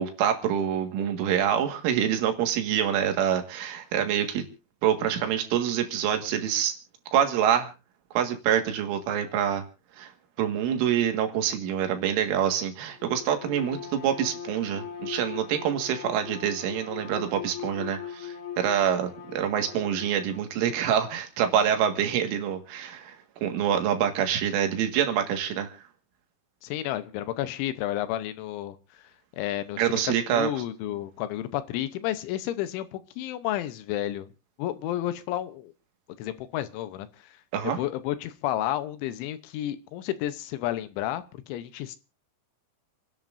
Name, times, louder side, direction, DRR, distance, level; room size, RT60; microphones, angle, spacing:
voice 1, 0.0-4.4 4.8-6.7 7.1-7.7 8.1-9.6 10.0-10.1 10.4-23.1 23.4-25.8 29.8-30.5 37.5-37.8, right 9 dB, 80° right, 5 dB, 4.3 m, -26 dB
Bowed string instrument, 12.9-20.5, left 8 dB, 65° left, 5.4 m, -40 dB
voice 2, 26.6-29.1 29.4-34.3 34.6-35.7 36.2-37.4 37.6-42.0, left 13 dB, 80° left, 12 dB, 3.2 m, -31 dB
29.5 x 11.0 x 2.6 m, 0.32 s
omnidirectional pair, 5.6 m